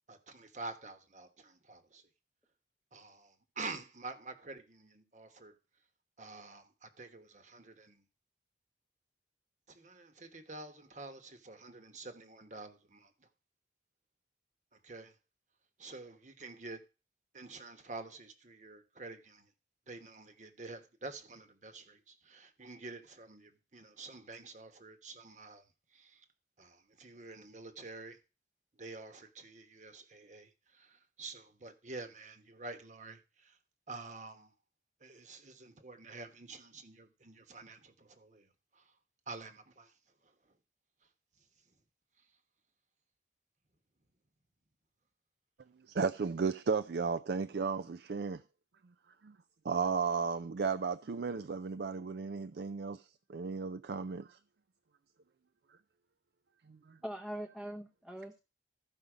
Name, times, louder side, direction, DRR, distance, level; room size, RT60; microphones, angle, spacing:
voice 1, 0.1-2.0 2.9-5.5 6.2-8.0 9.7-13.3 14.8-15.1 15.8-16.8 17.3-19.5 19.9-25.6 25.9-26.2 26.6-28.2 28.8-33.6 33.9-34.5 35.0-38.5 38.7-38.9 39.3-39.9 40.2-40.3, right 3 dB, 45° right, 1.2 m, -48 dB
voice 2, 45.9-48.4 49.2-49.4 49.6-54.4 56.7-57.0, right 5 dB, 65° right, 0.4 m, -34 dB
voice 3, 57.0-58.4, right 1 dB, ahead, 0.7 m, -42 dB
14.0 x 5.5 x 5.0 m
head